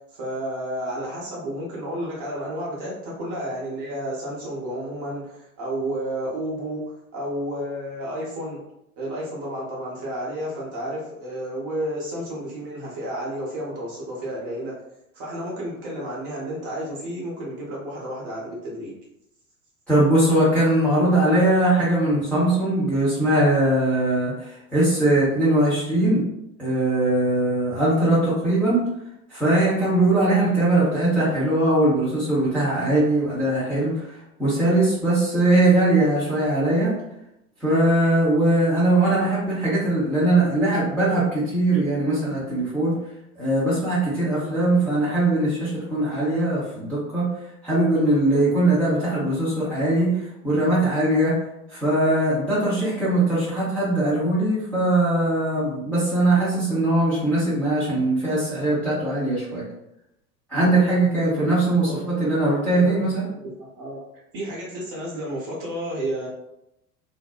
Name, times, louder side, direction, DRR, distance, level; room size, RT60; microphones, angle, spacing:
voice 1, 0.1-8.6 9.0-14.8 15.1-18.9 61.9-62.1 62.7-64.0 64.3-66.3, right 1 dB, 30° right, -5 dB, 0.7 m, -31 dB
voice 2, 19.9-26.2 26.6-28.8 29.3-33.9 34.4-36.9 37.6-42.9 43.4-47.3 47.6-50.1 50.4-51.3 51.7-59.6 60.5-63.2, right 1 dB, 5° left, -10 dB, 0.7 m, -21 dB
2.6 x 2.0 x 2.3 m, 0.82 s
figure-of-eight pair, 85°, 44 cm